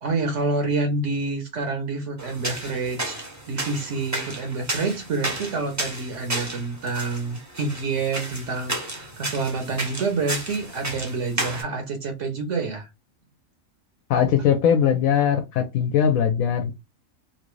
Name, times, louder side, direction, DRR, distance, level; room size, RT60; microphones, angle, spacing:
voice 1, 0.0-12.9, right 3 dB, 65° right, 1.0 m, -28 dB
sound 1, 2.2-11.6, right 1 dB, 20° right, 0.6 m, -33 dB
voice 2, 14.1-16.7, left 8 dB, 80° left, 1.0 m, -20 dB
3.0 x 2.5 x 3.1 m
omnidirectional pair, 1.4 m